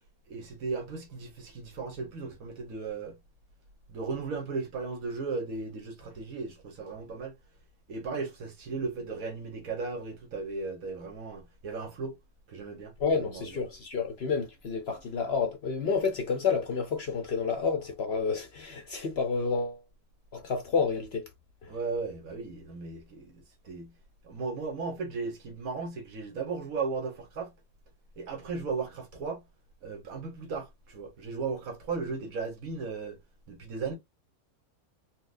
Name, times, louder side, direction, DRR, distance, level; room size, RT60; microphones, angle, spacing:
voice 1, 0.3-3.2 3.9-7.3 7.9-12.2 12.5-13.6 21.7-23.9 24.2-27.5 28.2-29.4 29.8-33.2 33.5-33.9, right 4 dB, 75° right, 1.5 m, -36 dB
voice 2, 13.0-19.8 20.3-21.3 21.6-21.7, left 5 dB, 55° left, 0.8 m, -30 dB
4.2 x 2.2 x 2.5 m
omnidirectional pair, 1.5 m